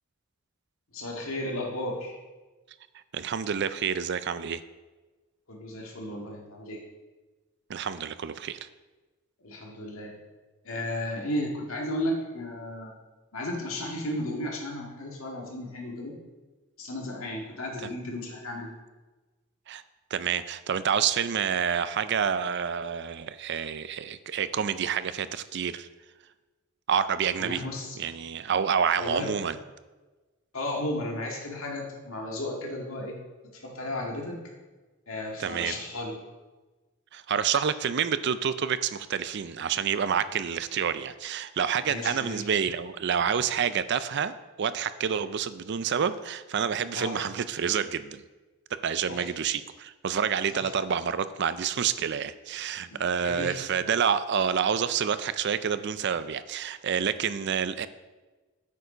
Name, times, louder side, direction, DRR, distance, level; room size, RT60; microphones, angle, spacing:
voice 1, 0.9-2.2 5.5-6.8 9.4-10.1 10.6-12.9 13.3-16.2 16.8-18.7 27.4-28.0 29.0-29.3 30.5-33.2 33.5-34.4 35.1-36.2 41.9-42.4 46.9-47.2 49.1-49.3 50.5-50.7 52.9-53.6, left 1 dB, 85° left, 0 dB, 2.0 m, -34 dB
voice 2, 3.1-4.6 7.7-8.7 19.7-19.8 20.1-25.9 26.9-27.6 28.0-29.6 35.4-35.7 37.1-44.3 44.6-48.2 48.8-57.9, right 7 dB, 55° right, 14 dB, 0.5 m, -28 dB
8.4 x 7.0 x 5.0 m, 1.2 s
head